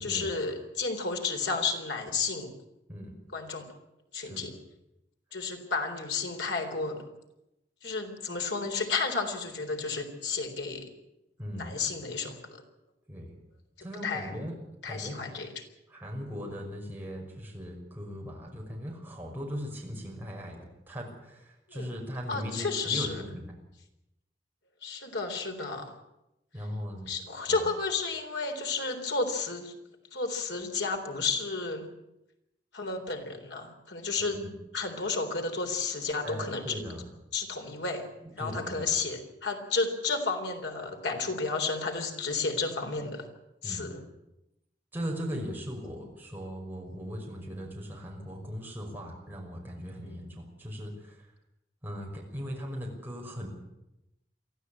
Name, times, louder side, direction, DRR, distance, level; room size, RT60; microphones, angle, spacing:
voice 1, 0.0-2.5 3.3-3.7 4.1-4.5 5.3-7.0 7.8-10.9 11.6-12.6 14.0-14.3 14.8-15.6 21.7-21.9 22.3-23.2 24.8-25.9 27.1-29.7 30.1-31.9 32.7-34.4 34.7-36.8 37.3-38.0 38.4-43.3 43.6-44.0 50.0-50.3, left 4 dB, 90° left, 4 dB, 3.9 m, -32 dB
voice 2, 11.4-11.7 13.1-13.3 13.8-14.5 14.9-15.2 15.9-23.5 26.5-27.1 27.5-27.6 34.3-34.5 36.2-37.0 38.2-38.9 43.6-43.9 44.9-51.3 51.8-53.5, equal, 10° right, -1 dB, 5.7 m, -39 dB
23.5 x 14.5 x 8.6 m, 0.91 s
head